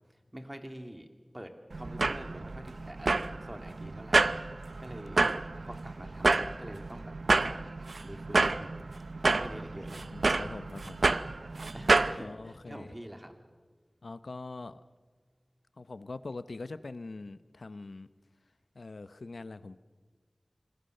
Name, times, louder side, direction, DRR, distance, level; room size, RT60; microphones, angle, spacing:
voice 1, 0.3-1.1 1.3-4.2 4.5-5.2 5.6-7.7 8.0-8.8 9.4-10.1 11.7-13.3, equal, 20° right, 6 dB, 2.6 m, -46 dB
sound 1, 1.7-12.2, right 3 dB, 90° right, 0.6 m, -29 dB
voice 2, 10.1-11.1 12.1-12.9 14.0-14.8 15.8-18.1 18.7-19.8, left 3 dB, 90° left, 14 dB, 0.8 m, -43 dB
27.0 x 21.0 x 6.6 m, 1.4 s
wide cardioid pair, 60°, 0 cm